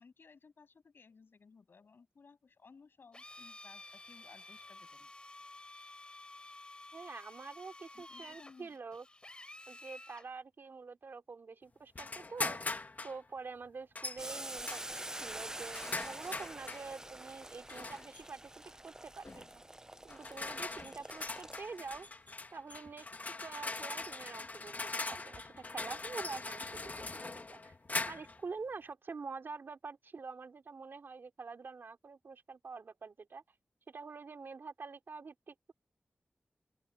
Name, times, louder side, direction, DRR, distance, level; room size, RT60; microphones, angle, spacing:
voice 1, 0.0-5.1 7.9-8.8, left 5 dB, 80° left, 7.9 m, -60 dB
Drill, 3.1-10.3, left 2 dB, 30° left, 3.6 m, -52 dB
voice 2, 6.9-9.0 9.7-12.6 13.0-18.5 18.8-19.6 20.0-22.1 22.5-27.7 28.1-33.4 33.9-35.7, right 4 dB, 75° right, 3.3 m, -46 dB
sound 1, 11.9-13.2 13.9-14.2 14.6-16.9 17.7-18.2 19.2-19.5 20.1-28.4, left 3 dB, 45° left, 1.7 m, -41 dB
Boiling, 14.2-22.0, right 1 dB, 15° right, 0.7 m, -47 dB
open air
wide cardioid pair, 65°, 4 cm